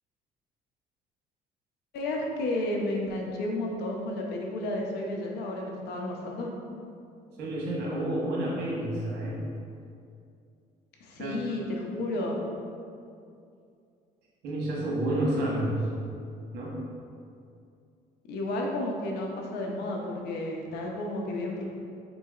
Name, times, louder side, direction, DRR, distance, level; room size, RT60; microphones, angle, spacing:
voice 1, 1.9-6.5 11.0-12.4 18.3-21.6, left 1 dB, 75° left, 0 dB, 0.6 m, -32 dB
voice 2, 7.4-9.5 11.2-11.4 14.4-15.9 16.5-16.8, right 1 dB, 75° right, -4 dB, 1.0 m, -29 dB
3.9 x 3.8 x 2.4 m, 2.4 s
cardioid pair, 110°, 17 cm